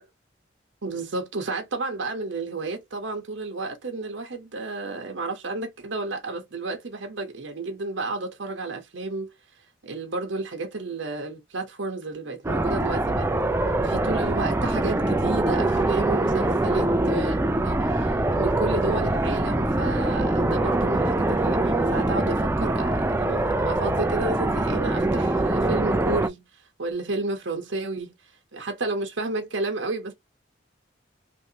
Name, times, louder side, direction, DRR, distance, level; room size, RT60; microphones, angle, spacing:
voice 1, 0.8-9.3 9.8-13.3 13.8-17.4 17.6-28.1 28.5-30.1, right 3 dB, 75° right, 0.8 m, -31 dB
sound 1, 12.4-26.3, right 2 dB, 10° right, 0.3 m, -23 dB
3.0 x 2.7 x 2.8 m
head